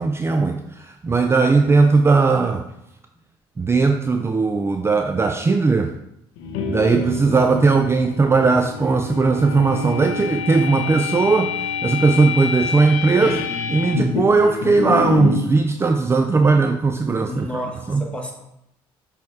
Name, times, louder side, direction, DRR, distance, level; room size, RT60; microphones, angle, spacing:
voice 1, 0.0-2.6 3.6-5.9 6.7-11.5 11.8-13.4 13.7-18.0, right 4 dB, 25° right, 6 dB, 0.4 m, -18 dB
sound 1, 6.4-15.5, left 5 dB, 80° left, 0.7 m, -27 dB
voice 2, 17.2-18.3, left 1 dB, 10° left, 0 dB, 1.6 m, -31 dB
6.3 x 3.6 x 4.1 m, 0.81 s
supercardioid pair, 65°, 11 cm